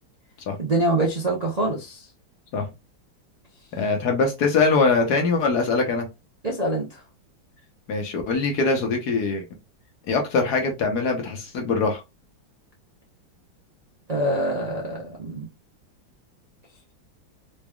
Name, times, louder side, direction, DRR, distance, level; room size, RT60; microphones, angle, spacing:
voice 1, 0.6-2.1 6.4-7.0 14.1-15.5, right 1 dB, 65° right, 0.4 m, -25 dB
voice 2, 3.7-6.1 7.9-9.4 10.1-12.0, left 4 dB, 60° left, 1.3 m, -22 dB
4.0 x 3.4 x 2.3 m
omnidirectional pair, 2.2 m